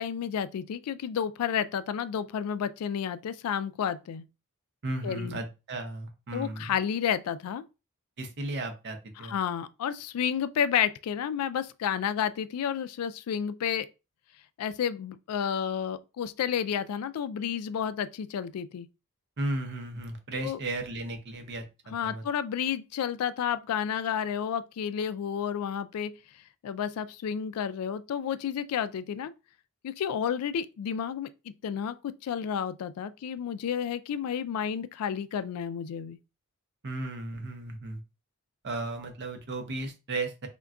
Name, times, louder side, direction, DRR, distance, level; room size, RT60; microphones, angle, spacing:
voice 1, 0.0-4.2 5.0-5.4 6.3-7.6 9.3-13.9 14.6-18.9 20.4-20.6 21.9-26.1 26.6-29.3 29.8-31.3 31.6-36.2, left 8 dB, 75° left, 0.3 m, -31 dB
voice 2, 4.8-6.8 8.2-9.4 19.4-22.2 36.8-38.0 38.6-40.5, right 2 dB, 50° right, 0.6 m, -35 dB
2.2 x 2.2 x 3.6 m
head